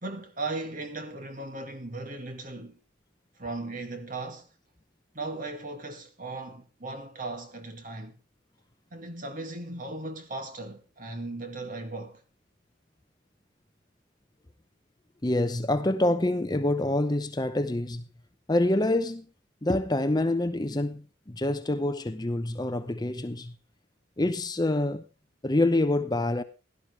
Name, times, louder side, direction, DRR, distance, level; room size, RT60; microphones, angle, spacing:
voice 1, 0.0-2.8 3.4-4.5 5.1-8.2 8.9-12.2, right 2 dB, 45° right, 2.2 m, -37 dB
voice 2, 15.2-18.0 18.5-19.3 19.6-23.5 24.2-25.0 25.4-26.4, left 1 dB, 20° left, 0.7 m, -26 dB
17.0 x 12.0 x 3.3 m
head